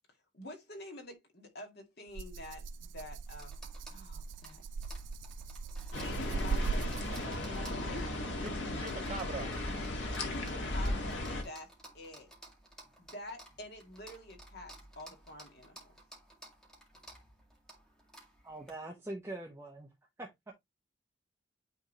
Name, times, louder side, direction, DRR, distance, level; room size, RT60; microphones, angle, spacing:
voice 1, 0.3-3.6 3.9-4.6 6.1-7.3 7.9-8.2 10.1-12.3 13.0-16.0, left 1 dB, 55° left, 1.9 m, -48 dB
Rattle (instrument), 2.1-7.5, right 4 dB, 80° right, 0.4 m, -38 dB
sound 1, 2.7-18.7, right 1 dB, 5° left, 2.1 m, -56 dB
sound 2, 5.9-11.4, left 1 dB, 75° left, 1.8 m, -36 dB
voice 2, 8.4-9.6, right 3 dB, 35° right, 3.1 m, -42 dB
voice 3, 18.4-19.9 20.2-20.5, right 2 dB, 15° right, 1.0 m, -43 dB
9.4 x 3.7 x 3.0 m
head